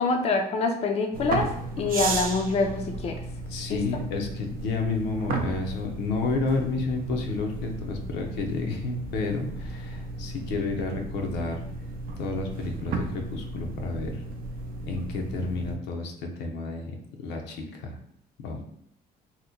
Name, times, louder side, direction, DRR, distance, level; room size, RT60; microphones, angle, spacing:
voice 1, 0.0-1.4 1.8-3.1 3.7-3.8, left 3 dB, 40° left, 3 dB, 0.4 m, -25 dB
sound 1, 1.1-15.8, right 3 dB, 55° right, 0.5 m, -35 dB
voice 2, 3.5-11.6 12.2-14.2 14.9-16.9 17.2-18.0 18.4-18.7, left 3 dB, 85° left, 2 dB, 0.6 m, -31 dB
2.9 x 2.1 x 3.7 m, 0.71 s
cardioid pair, 110°, 17 cm